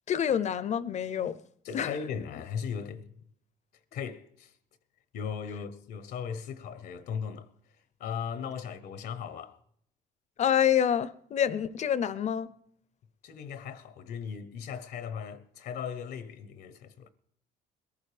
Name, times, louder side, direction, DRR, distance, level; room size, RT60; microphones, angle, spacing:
voice 1, 0.1-1.4 1.7-1.9 10.4-12.5, left 9 dB, 45° left, 0.6 m, -27 dB
voice 2, 1.6-3.1 3.9-4.5 5.1-7.5 8.0-9.6 13.2-17.1, left 7 dB, 70° left, 0.9 m, -37 dB
21.0 x 14.0 x 3.4 m
cardioid pair, 110°, 17 cm